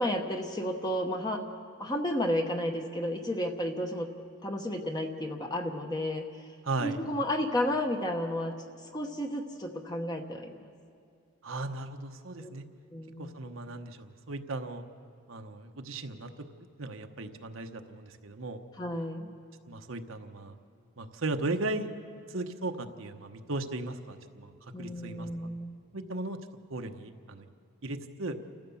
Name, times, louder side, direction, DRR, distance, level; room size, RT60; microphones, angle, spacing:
voice 1, 0.0-1.4 1.8-4.1 4.4-6.5 6.8-8.6 8.8-10.7 12.4-12.5 12.9-13.3 18.8-19.3 24.7-25.8, left 1 dB, 20° left, 3 dB, 1.0 m, -32 dB
voice 2, 6.6-7.0 11.4-12.6 13.2-14.8 15.3-16.3 16.8-18.6 19.7-20.5 21.0-21.9 22.3-25.3 25.9-26.4 26.7-27.5 27.8-28.4, right 2 dB, 65° right, 6 dB, 1.1 m, -36 dB
29.5 x 14.0 x 7.1 m, 2.3 s
head